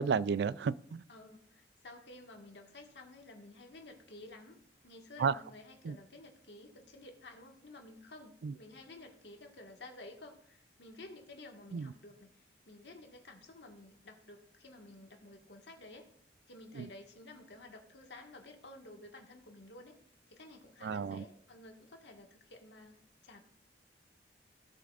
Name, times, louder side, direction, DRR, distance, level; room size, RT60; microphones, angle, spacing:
voice 1, 0.0-1.0 5.2-5.3 5.8-6.0 8.4-8.5 11.7-11.9 16.8-16.9 20.8-21.2, right 6 dB, 70° right, 0.3 m, -32 dB
voice 2, 1.1-16.1 16.5-20.0 20.3-23.0 23.2-23.4, left 2 dB, 80° left, 1.7 m, -53 dB
16.5 x 7.6 x 2.5 m
head